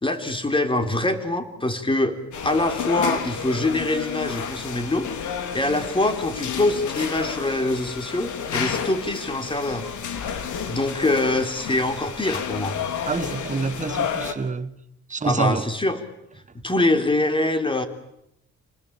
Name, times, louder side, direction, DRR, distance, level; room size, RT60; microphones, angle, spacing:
voice 1, 0.0-2.2 2.4-5.1 5.5-9.9 10.7-12.8 15.2-16.0 16.6-17.8, left 2 dB, 15° left, 3.7 m, -24 dB
sound 1, 2.3-14.3, left 7 dB, 75° left, 3.4 m, -31 dB
voice 2, 13.1-14.7 15.1-15.6, right 4 dB, 25° right, 1.5 m, -27 dB
30.0 x 20.5 x 8.9 m
cardioid pair, 90°, 30 cm